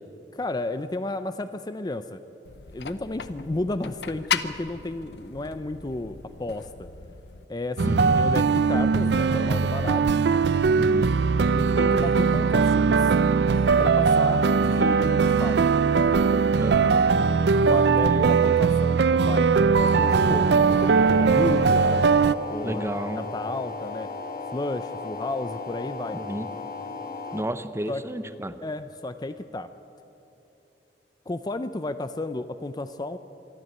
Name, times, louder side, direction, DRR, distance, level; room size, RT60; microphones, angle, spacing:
voice 1, 0.3-2.2 2.7-6.9 7.5-10.1 11.5-13.2 13.8-15.7 17.3-22.1 22.5-22.8 23.2-24.1 24.5-26.2 27.9-28.0 28.6-29.7 31.3-33.2, left 2 dB, 25° left, 11 dB, 0.5 m, -32 dB
sound 1, 2.4-7.5, left 6 dB, 70° left, 0.7 m, -36 dB
sound 2, 7.8-22.3, right 5 dB, 70° right, 0.5 m, -20 dB
voice 2, 10.7-11.1 16.5-17.1 22.6-23.3 26.1-26.5 27.3-28.6, right 1 dB, 15° right, 11 dB, 0.8 m, -31 dB
sound 3, 19.9-27.4, left 4 dB, 55° left, 1.5 m, -35 dB
23.5 x 14.0 x 9.0 m, 2.9 s
head